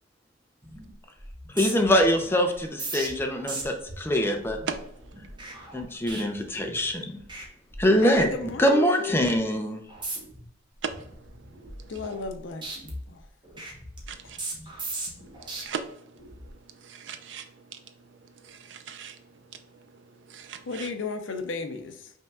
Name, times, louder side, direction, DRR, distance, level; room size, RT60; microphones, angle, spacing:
sound 1, 0.6-0.9 1.2-6.9 7.2-7.5 7.7-8.7 9.1-9.4 9.9-10.4 10.9-12.4 12.6-15.6 16.2-16.5, right 2 dB, 25° right, 1.0 m, -39 dB
voice 1, 1.5-4.6 5.7-7.2 7.8-8.3 8.6-9.8, equal, 10° left, 3 dB, 0.6 m, -23 dB
voice 2, 8.0-9.1 11.9-13.2 20.7-22.1, left 4 dB, 85° left, 7 dB, 0.6 m, -34 dB
voice 3, 16.8-17.4 18.5-19.2 20.3-20.9, right 6 dB, 75° right, 8 dB, 0.6 m, -37 dB
5.5 x 3.3 x 2.3 m, 0.75 s
head